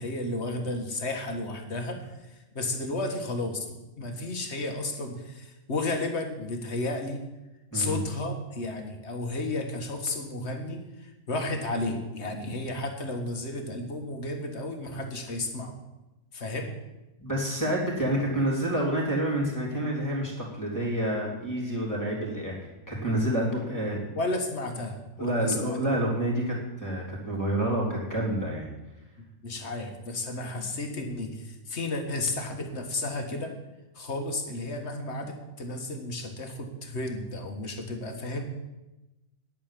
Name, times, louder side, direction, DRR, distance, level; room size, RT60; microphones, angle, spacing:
voice 1, 0.0-2.0 2.5-3.7 4.0-7.2 7.7-15.7 16.3-16.7 24.1-25.8 29.4-33.6 34.0-38.4, left 2 dB, 50° left, 4 dB, 1.8 m, -32 dB
voice 2, 17.2-24.0 25.2-28.7, right 1 dB, 10° left, -4 dB, 3.4 m, -28 dB
10.0 x 8.7 x 7.5 m, 1.0 s
omnidirectional pair, 1.5 m